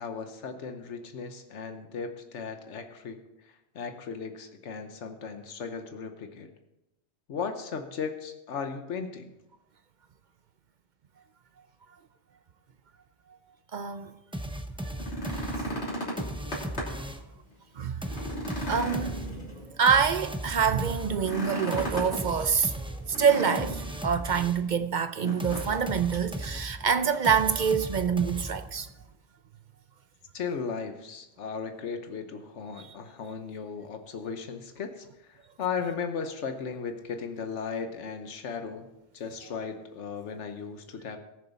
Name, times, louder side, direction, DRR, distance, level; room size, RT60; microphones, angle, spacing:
voice 1, 0.0-3.2 3.7-6.5 7.3-9.3 30.3-38.9 39.1-41.2, left 6 dB, 90° left, 1.3 m, -36 dB
voice 2, 13.7-14.1 15.6-15.8 17.8-18.0 18.7-19.2 19.8-22.7 23.1-28.9 32.8-32.9, right 7 dB, 55° right, 0.6 m, -26 dB
sound 1, 14.3-17.4 18.0-24.8 25.4-28.9, right 1 dB, 5° right, 0.6 m, -37 dB
sound 2, 14.8-17.1 17.5-17.6 18.0-19.9 21.1-22.2 23.1-24.0 25.2-25.8 26.1-26.3 26.8-27.4 28.5-28.6, equal, 65° left, 3.3 m, -35 dB
sound 3, 18.7-24.6, right 1 dB, 35° right, 3.3 m, -52 dB
19.0 x 6.9 x 4.1 m
omnidirectional pair, 1.2 m